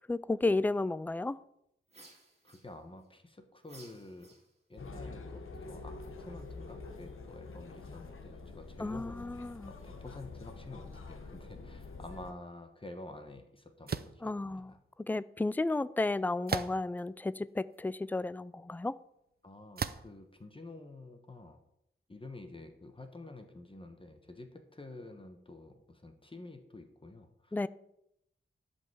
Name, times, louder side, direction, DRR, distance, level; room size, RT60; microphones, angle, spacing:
voice 1, 0.1-1.4 8.8-9.7 14.2-14.7 15.1-18.9 27.5-27.7, left 2 dB, 10° left, 0.3 m, -32 dB
sound 1, 1.9-3.1 3.6-4.8, right 2 dB, 30° right, 2.6 m, -57 dB
voice 2, 2.4-4.4 4.7-14.8 19.4-21.6 22.1-27.7, left 2 dB, 25° left, 1.1 m, -49 dB
sound 2, 4.8-12.3, left 3 dB, 85° left, 1.2 m, -46 dB
sound 3, 13.9-14.2 16.5-17.0 17.7-17.8 19.8-20.2, right 6 dB, 50° right, 0.5 m, -35 dB
11.5 x 5.5 x 7.0 m
wide cardioid pair, 115°, 21 cm